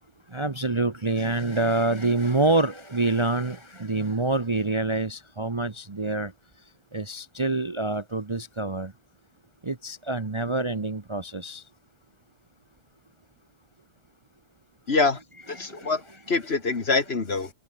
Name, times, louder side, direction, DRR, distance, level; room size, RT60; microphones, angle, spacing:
voice 1, 0.3-6.3 6.9-8.9 9.6-11.6 15.5-15.9, right 2 dB, 25° right, 0.9 m, -26 dB
voice 2, 14.9-15.2 15.5-16.0 16.3-17.5, left 4 dB, 45° left, 2.1 m, -24 dB
omnidirectional pair, 1.5 m